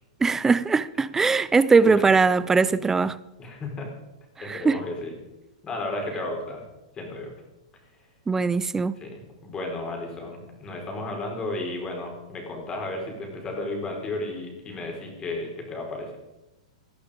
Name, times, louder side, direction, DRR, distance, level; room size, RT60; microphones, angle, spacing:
voice 1, 0.2-3.2 4.4-4.8 8.3-9.0, right 4 dB, 10° right, 0.4 m, -21 dB
voice 2, 3.4-3.9 4.4-5.1 5.6-6.6 6.9-7.3 9.0-16.2, left 2 dB, 20° left, 4.7 m, -33 dB
17.5 x 11.0 x 5.2 m
hypercardioid pair, 135°, 4 cm